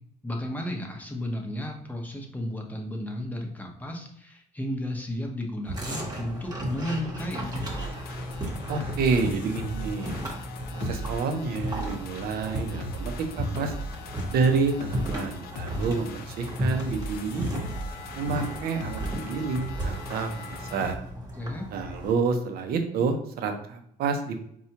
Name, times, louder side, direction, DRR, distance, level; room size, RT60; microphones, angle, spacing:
voice 1, 0.2-7.5 21.4-21.7, left 1 dB, 10° left, 1 dB, 0.7 m, -33 dB
sound 1, 5.7-22.1, equal, 20° right, 1.0 m, -35 dB
sound 2, 7.2-20.9, left 1 dB, 65° left, 0.4 m, -39 dB
voice 2, 8.7-10.2 10.7-13.7 14.3-17.7 18.2-21.0 21.7-24.4, right 4 dB, 65° right, 6 dB, 0.6 m, -28 dB
4.3 x 2.3 x 2.8 m, 0.70 s
cardioid pair, 110°, 17 cm